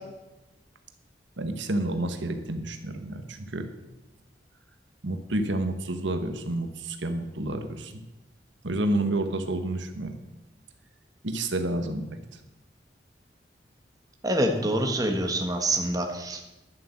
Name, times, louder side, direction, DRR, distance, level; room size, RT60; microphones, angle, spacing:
voice 1, 1.4-3.7 5.0-8.0 8.6-10.2 11.2-12.2 14.6-14.7, right 1 dB, 85° right, 7 dB, 1.3 m, -29 dB
voice 2, 14.2-16.4, right 1 dB, 20° right, 3 dB, 1.5 m, -26 dB
11.5 x 7.6 x 7.3 m, 1.0 s
head